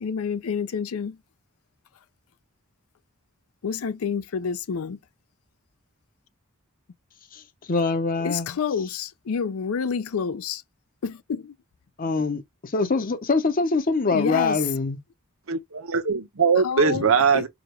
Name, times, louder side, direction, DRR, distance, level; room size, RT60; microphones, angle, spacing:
voice 1, 0.0-1.2 3.6-5.0 8.2-10.6 11.0-11.5 14.1-14.6 16.6-17.1 17.3-17.5, left 6 dB, 80° left, 0.4 m, -28 dB
voice 2, 7.7-8.6 12.0-15.0, left 3 dB, 40° left, 0.7 m, -24 dB
voice 3, 15.5-17.5, right 5 dB, 70° right, 0.8 m, -21 dB
5.0 x 2.4 x 3.0 m
head